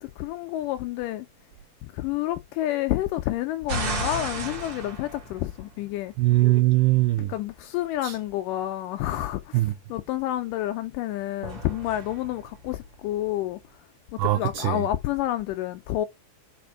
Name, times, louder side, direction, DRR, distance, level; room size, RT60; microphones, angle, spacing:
voice 1, 0.0-1.3 1.8-6.1 7.2-13.6 14.1-16.1, left 14 dB, 90° left, 1.8 m, -29 dB
sound 1, 3.7-6.1 11.4-13.5, right 1 dB, 45° right, 1.6 m, -34 dB
voice 2, 6.2-7.3 8.0-8.2 9.5-9.7 14.2-14.8, right 17 dB, 85° right, 1.9 m, -21 dB
5.1 x 5.0 x 4.5 m
omnidirectional pair, 4.4 m